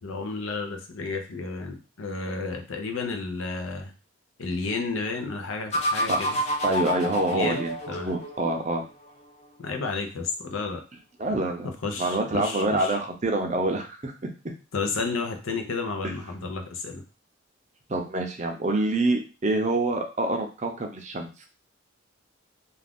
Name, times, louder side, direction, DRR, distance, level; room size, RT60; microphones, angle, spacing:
voice 1, 0.0-3.9 4.4-6.4 7.3-8.1 9.6-10.8 11.6-13.0 14.7-17.0, left 4 dB, 75° left, 4 dB, 0.6 m, -32 dB
sound 1, 5.7-8.6, left 1 dB, 30° left, 0.4 m, -28 dB
voice 2, 6.1-7.7 8.0-8.8 11.2-11.7 12.0-14.3 17.9-21.3, right 2 dB, 35° right, 3 dB, 0.5 m, -26 dB
2.4 x 2.4 x 3.4 m, 0.32 s
head